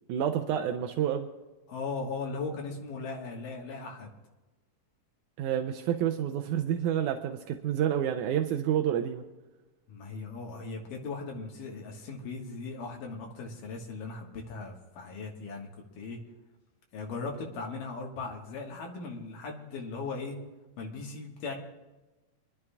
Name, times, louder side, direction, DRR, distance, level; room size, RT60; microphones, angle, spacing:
voice 1, 0.1-1.3 5.4-9.2, right 10 dB, 80° right, 5 dB, 2.0 m, -29 dB
voice 2, 1.7-4.1 9.9-15.7 16.0-16.2 16.9-20.4 20.8-21.5, left 4 dB, 90° left, 0 dB, 3.2 m, -38 dB
26.0 x 12.0 x 2.4 m, 1.1 s
omnidirectional pair, 3.7 m